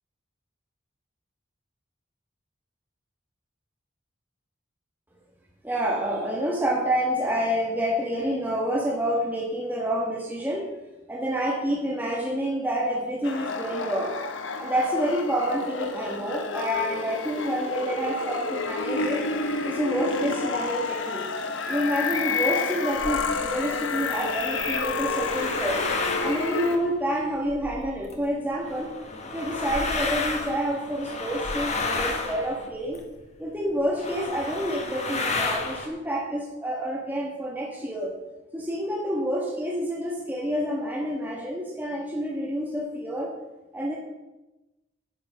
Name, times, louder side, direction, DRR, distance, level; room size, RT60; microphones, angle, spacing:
voice 1, 5.6-10.7 11.1-14.1 14.6-19.3 19.6-21.2 21.7-25.8 26.2-28.9 29.3-33.0 33.4-38.1 38.5-43.3 43.7-43.9, equal, 10° right, -3 dB, 1.5 m, -28 dB
sound 1, 13.2-26.8, left 4 dB, 75° left, 1.1 m, -30 dB
sound 2, 22.9-23.5 24.3-28.2 28.6-33.2 33.7-33.8 34.0-35.9, left 3 dB, 35° left, 1.4 m, -32 dB
9.3 x 8.6 x 5.8 m, 1.0 s
head